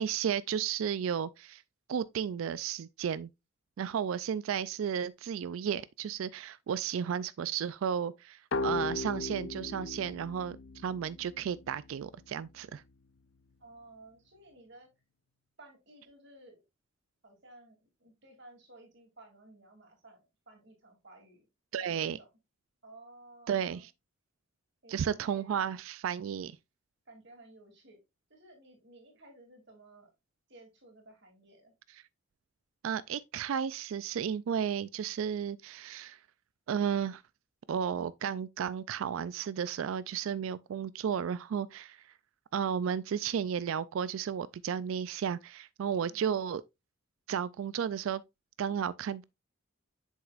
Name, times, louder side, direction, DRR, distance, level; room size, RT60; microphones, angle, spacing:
voice 1, 0.0-1.6 1.9-3.3 3.8-12.8 21.7-22.2 23.5-23.8 24.9-26.6 32.8-36.2 36.7-37.2 37.7-42.1 42.5-46.6 47.3-48.2 48.6-49.2, right 8 dB, 75° right, 0.3 m, -33 dB
sound 1, 8.5-12.0, left 3 dB, 60° left, 0.5 m, -37 dB
voice 2, 13.6-14.9 15.6-16.6 17.2-21.5 21.8-22.3 22.8-23.9 24.8-25.7 27.0-28.0 28.3-30.1 30.5-31.7 46.0-46.2, right 2 dB, 55° right, 2.9 m, -55 dB
7.9 x 6.4 x 2.4 m
head